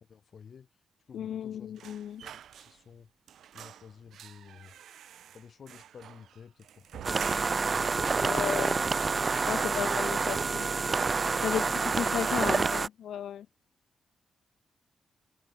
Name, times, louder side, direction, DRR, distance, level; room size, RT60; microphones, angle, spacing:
voice 1, 0.1-0.7 1.1-1.9 2.2-3.1 3.5-4.7 5.3-8.7 9.5-9.8 11.4-11.8 12.3-12.4, left 6 dB, 45° left, 2.9 m, -52 dB
voice 2, 1.1-2.2 8.2-8.8 9.3-10.7 11.4-11.6 12.0-13.5, left 10 dB, 80° left, 0.9 m, -34 dB
sound 1, 1.8-3.0 3.3-7.8 8.2-8.3 8.6-9.4 9.7-9.9 10.2-10.9 11.2-11.4, right 10 dB, 85° right, 1.7 m, -48 dB
sound 2, 7.0-12.9, right 4 dB, 30° right, 0.6 m, -28 dB
wide cardioid pair, 165°, 0 cm